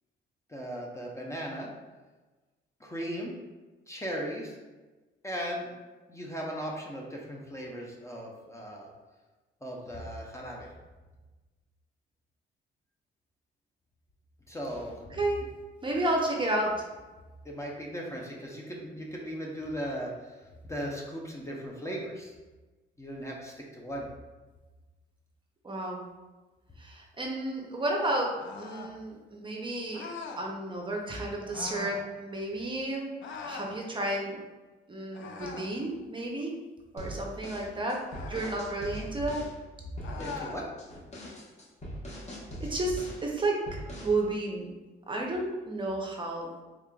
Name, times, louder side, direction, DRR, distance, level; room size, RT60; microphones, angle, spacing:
voice 1, 0.5-1.7 2.8-3.3 3.9-4.6 5.2-5.7 6.1-8.9 9.6-10.7 14.5-14.9 17.5-20.3 20.6-22.3 23.0-24.0 40.2-40.7, equal, 15° left, -2 dB, 0.6 m, -37 dB
voice 2, 15.1-15.4 15.8-16.9 25.6-26.0 26.8-30.1 30.4-33.2 33.4-34.4 34.9-36.5 36.9-39.5 42.6-43.8 44.0-44.7 45.1-46.5, right 1 dB, 25° right, -1 dB, 0.6 m, -32 dB
sound 1, 28.4-29.0 29.9-30.5 31.5-32.0 33.2-33.7 35.1-35.8 38.1-38.6 40.0-40.6, left 4 dB, 75° left, 0.5 m, -41 dB
sound 2, 37.0-39.5 40.0-40.5 40.8-43.3 43.7-44.2, equal, 35° left, 1.1 m, -41 dB
3.5 x 3.4 x 2.3 m, 1.2 s
cardioid pair, 90°, 20 cm